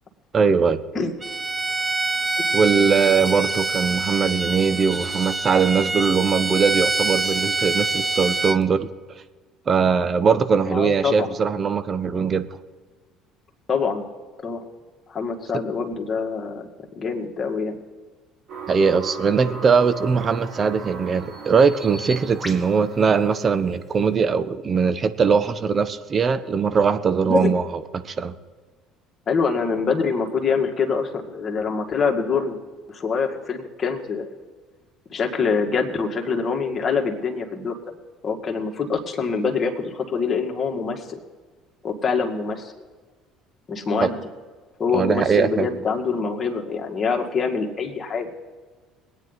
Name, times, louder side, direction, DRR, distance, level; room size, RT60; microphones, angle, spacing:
voice 1, 0.3-0.8 2.5-8.9 9.7-12.5 18.7-28.3 44.0-44.1 44.9-45.7, right 5 dB, 40° right, 12 dB, 0.9 m, -21 dB
Bowed string instrument, 1.2-8.6, right 3 dB, 20° right, 0.6 m, -25 dB
voice 2, 10.6-11.3 13.7-14.0 14.4-14.6 15.1-16.7 17.0-17.8 27.3-27.5 29.3-32.6 32.9-34.3 35.1-37.8 38.2-41.2 41.8-42.7 43.7-44.2 44.8-48.3, left 5 dB, 35° left, 2 dB, 2.0 m, -25 dB
sound 1, 18.5-23.5, right 5 dB, 60° right, 5.3 m, -38 dB
Bird vocalization bird call bird song, 20.0-24.2, right 1 dB, 5° right, 1.9 m, -42 dB
22.0 x 9.3 x 4.0 m, 1.4 s
hypercardioid pair, 60°, 0 cm